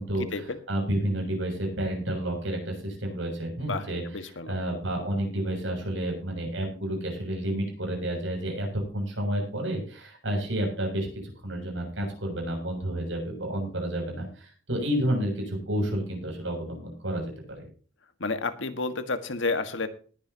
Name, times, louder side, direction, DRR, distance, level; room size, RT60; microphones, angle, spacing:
voice 1, 0.0-4.0 4.5-8.7 8.9-11.1 11.4-17.6, right 1 dB, 85° right, 2 dB, 7.1 m, -30 dB
voice 2, 3.6-4.5 18.2-19.9, left 3 dB, 90° left, 9 dB, 1.6 m, -31 dB
19.5 x 9.8 x 2.9 m, 0.40 s
head